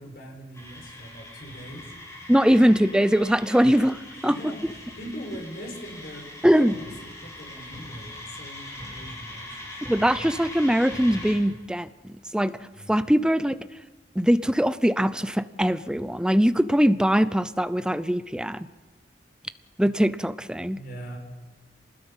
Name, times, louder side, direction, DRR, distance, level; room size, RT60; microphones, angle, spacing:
voice 1, 0.0-1.9 4.1-6.3 6.6-9.7 12.7-13.1 20.7-21.2, equal, 60° left, 2 dB, 5.4 m, -41 dB
sound 1, 0.5-11.3, left 1 dB, 20° left, 7.9 m, -41 dB
voice 2, 2.3-4.3 6.4-6.7 9.9-12.5 12.9-13.6 14.2-18.7 19.8-20.8, equal, 5° right, 14 dB, 0.6 m, -21 dB
28.0 x 20.0 x 5.6 m, 1.2 s
head